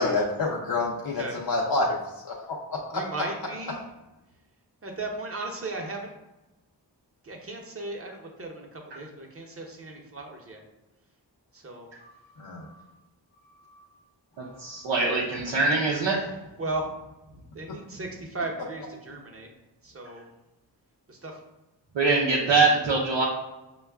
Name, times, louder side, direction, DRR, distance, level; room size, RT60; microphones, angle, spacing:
voice 1, 0.0-2.6 12.4-12.6, left 2 dB, 55° left, -3 dB, 0.6 m, -27 dB
voice 2, 2.9-3.8 4.8-6.1 7.2-10.6 11.5-11.9 16.2-16.3 16.6-16.9 17.3-19.5 19.8-20.2 21.1-21.4, right 2 dB, 30° right, 0 dB, 0.8 m, -36 dB
voice 3, 14.4-16.1 21.9-23.3, right 3 dB, 85° right, -4 dB, 0.7 m, -23 dB
5.2 x 2.3 x 2.3 m, 1.0 s
cardioid pair, 50°, 43 cm